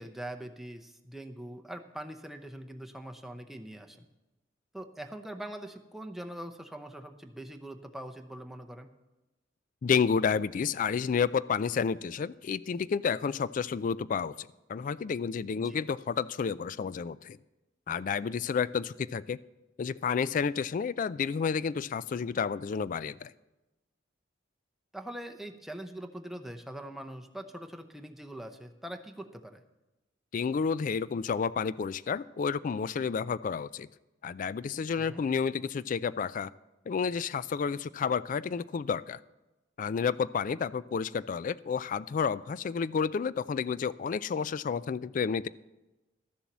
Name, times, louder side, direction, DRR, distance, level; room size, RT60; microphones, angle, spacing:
voice 1, 0.0-4.1 4.7-8.9 15.6-15.8 24.9-29.6 35.0-35.2, right 1 dB, ahead, 5 dB, 0.7 m, -43 dB
voice 2, 9.8-17.4 17.9-19.4 19.8-23.3 30.3-33.9 34.2-36.5 36.9-39.2 39.8-45.5, left 6 dB, 40° left, 18 dB, 0.3 m, -30 dB
13.0 x 7.1 x 7.2 m, 1.0 s
head